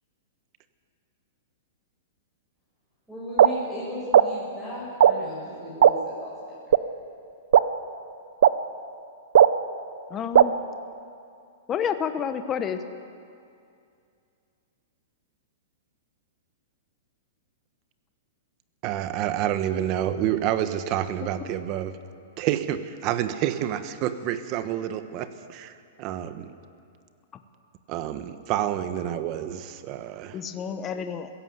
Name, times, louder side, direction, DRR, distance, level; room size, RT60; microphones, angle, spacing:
voice 1, 3.1-6.8, left 1 dB, 5° right, -9 dB, 6.6 m, -37 dB
sound 1, 3.4-3.5 4.1-4.2 5.0-5.1 5.8-5.9 6.7-6.8 7.5-7.6 8.4-8.5 9.3-9.5 10.3-10.4, right 10 dB, 70° right, 0.8 m, -13 dB
voice 2, 10.1-10.5 11.7-12.8 30.3-31.3, left 7 dB, 20° left, 8 dB, 0.9 m, -29 dB
voice 3, 18.8-22.0 22.4-26.5 27.9-30.4, right 11 dB, 35° right, 11 dB, 1.2 m, -28 dB
22.0 x 16.5 x 8.2 m, 2.4 s
hypercardioid pair, 155°, 0 cm